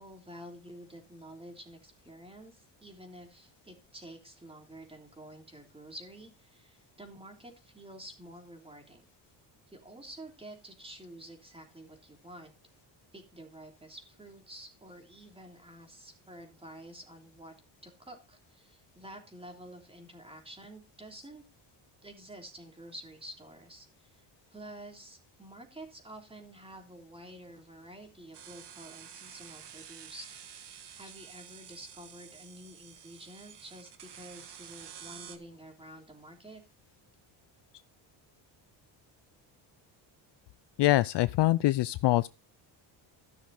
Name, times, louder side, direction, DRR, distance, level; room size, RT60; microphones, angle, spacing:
voice 1, 0.0-9.0 9.7-12.5 13.1-17.5 17.8-21.4 22.0-24.3 24.5-30.3 30.9-36.6, right 1 dB, 10° right, 3.3 m, -49 dB
sound 1, 28.3-35.4, right 9 dB, 55° right, 1.7 m, -50 dB
voice 2, 40.8-42.3, left 16 dB, 60° left, 0.5 m, -24 dB
14.0 x 6.4 x 4.2 m
cardioid pair, 110°, 48 cm